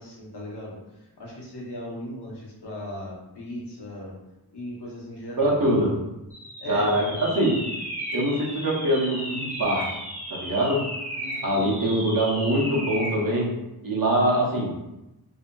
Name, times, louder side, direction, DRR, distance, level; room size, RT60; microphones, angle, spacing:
voice 1, 0.0-4.1 4.5-5.7 6.6-7.0 11.1-11.8, left 1 dB, 85° left, -4 dB, 0.9 m, -38 dB
voice 2, 5.4-6.0 6.7-7.6 8.1-9.9 10.3-10.9 11.4-13.5 13.8-14.7, right 1 dB, 55° right, -4 dB, 0.9 m, -23 dB
sound 1, 6.3-13.2, equal, 35° right, 1.1 m, -34 dB
2.7 x 2.5 x 2.2 m, 0.93 s
wide cardioid pair, 55°, 39 cm